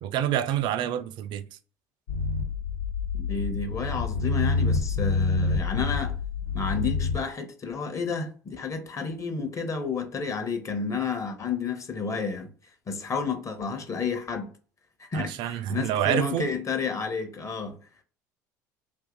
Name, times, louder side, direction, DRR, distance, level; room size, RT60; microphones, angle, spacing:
voice 1, 0.0-1.5 15.1-16.5, right 10 dB, 55° right, 0.4 m, -27 dB
sound 1, 2.1-7.1, left 3 dB, 75° left, 0.8 m, -27 dB
voice 2, 3.2-6.1 6.5-12.5 12.9-14.5 15.0-17.8, left 5 dB, 30° left, 0.9 m, -31 dB
2.7 x 2.7 x 3.7 m
hypercardioid pair, 65°, 10 cm